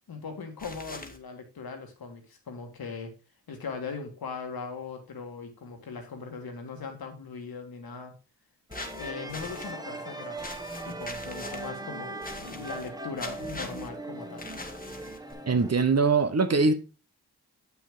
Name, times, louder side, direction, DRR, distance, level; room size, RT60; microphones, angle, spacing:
voice 1, 0.1-3.1 3.5-8.1 9.0-14.4, left 5 dB, 70° left, 1.7 m, -39 dB
sound 1, 0.6-1.2 8.7-9.7 10.4-11.7 12.2-12.9 13.2-13.9 14.4-15.3, left 2 dB, 20° left, 1.4 m, -42 dB
sound 2, 8.7-15.7, right 2 dB, 10° right, 1.4 m, -39 dB
voice 2, 15.5-16.7, right 4 dB, 40° right, 1.0 m, -22 dB
6.9 x 6.0 x 3.6 m
supercardioid pair, 40°, 38 cm